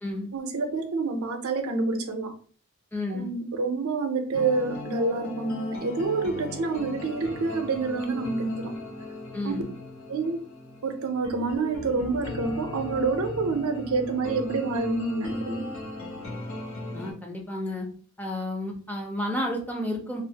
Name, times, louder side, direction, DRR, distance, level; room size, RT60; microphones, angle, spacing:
voice 1, 0.3-2.3 3.1-8.8 9.4-9.5 10.1-10.4 10.8-15.7, right 3 dB, 85° right, 0.5 m, -27 dB
voice 2, 2.9-3.3 9.3-9.7 16.9-17.9 18.2-20.2, left 1 dB, 10° left, 0.5 m, -31 dB
sound 1, 4.3-17.1, left 2 dB, 80° left, 0.8 m, -38 dB
2.5 x 2.4 x 2.7 m
head